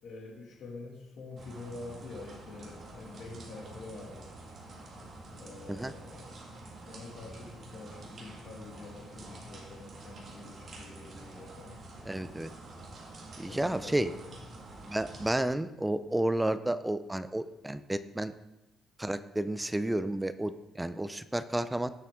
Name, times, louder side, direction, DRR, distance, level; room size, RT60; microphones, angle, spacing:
voice 1, 0.0-4.3 5.3-6.4 6.8-11.8 13.4-14.3, left 3 dB, 60° left, -1 dB, 2.3 m, -46 dB
sound 1, 1.4-15.3, right 2 dB, 40° right, 1.9 m, -48 dB
voice 2, 12.1-12.5 13.4-14.1 14.9-18.3 19.0-21.9, right 1 dB, 10° right, 12 dB, 0.4 m, -31 dB
18.0 x 6.9 x 3.7 m, 0.99 s
cardioid pair, 150°, 0 cm